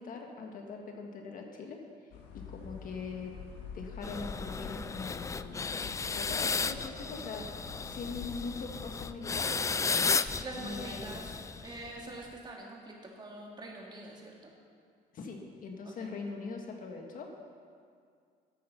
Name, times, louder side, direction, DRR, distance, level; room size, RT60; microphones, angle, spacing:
voice 1, 0.0-1.8 2.3-3.3 3.7-5.7 6.1-9.5 10.6-11.1 15.1-17.3, left 4 dB, 55° left, 2 dB, 1.6 m, -42 dB
sound 1, 2.1-9.7, left 5 dB, 80° left, 1.6 m, -47 dB
sound 2, 4.0-12.0, left 5 dB, 20° left, 0.3 m, -34 dB
voice 2, 10.4-11.4 11.6-14.5 15.8-16.1, right 2 dB, 25° right, -2 dB, 2.6 m, -45 dB
13.0 x 8.7 x 5.6 m, 2.2 s
cardioid pair, 110°, 17 cm